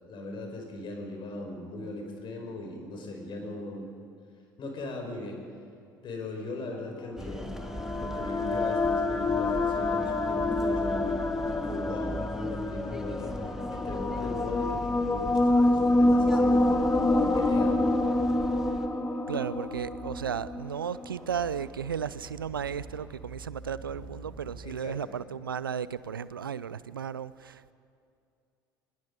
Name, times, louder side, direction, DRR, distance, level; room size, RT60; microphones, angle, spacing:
voice 1, 0.1-3.9 4.6-5.4 6.0-7.5 8.0-16.9 17.2-18.0 24.6-25.1, left 2 dB, 45° left, 5.4 m, -39 dB
sound 1, 7.0-21.1, left 2 dB, 20° left, 1.6 m, -27 dB
sound 2, 7.2-18.9, equal, 5° right, 1.8 m, -40 dB
sound 3, 15.2-24.7, right 2 dB, 65° right, 5.2 m, -47 dB
voice 2, 19.3-27.7, right 7 dB, 85° right, 0.5 m, -34 dB
24.0 x 21.0 x 5.3 m
figure-of-eight pair, 60°, 11 cm